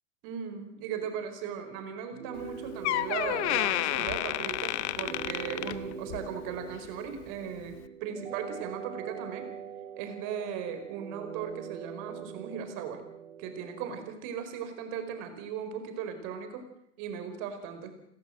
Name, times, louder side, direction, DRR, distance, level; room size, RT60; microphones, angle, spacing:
voice 1, 0.2-9.5 10.0-13.0 13.4-16.6 17.0-17.9, right 7 dB, 55° right, 7 dB, 4.8 m, -38 dB
sound 1, 2.1-14.1, right 8 dB, 85° right, 1.0 m, -43 dB
Door, 2.4-2.5 2.8-6.3 6.7-7.0 7.7-7.8, left 15 dB, 65° left, 1.1 m, -31 dB
29.5 x 13.5 x 7.8 m, 0.77 s
hypercardioid pair, 80°, 36 cm